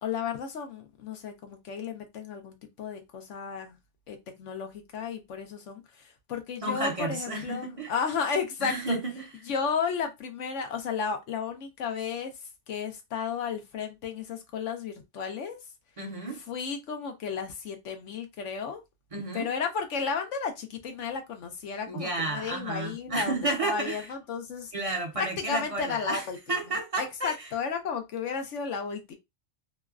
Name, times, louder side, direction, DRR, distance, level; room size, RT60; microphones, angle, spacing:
voice 1, 0.0-3.8 4.1-9.0 9.5-12.3 12.7-15.6 16.5-18.8 19.3-23.3 23.6-24.7 25.2-26.4 27.0-29.1, left 6 dB, 80° left, 1.0 m, -33 dB
voice 2, 6.6-7.9 8.6-9.3 16.0-16.4 19.1-19.5 21.9-24.1 24.7-27.5, right 2 dB, 35° right, 0.6 m, -32 dB
3.1 x 2.2 x 2.3 m
omnidirectional pair, 1.3 m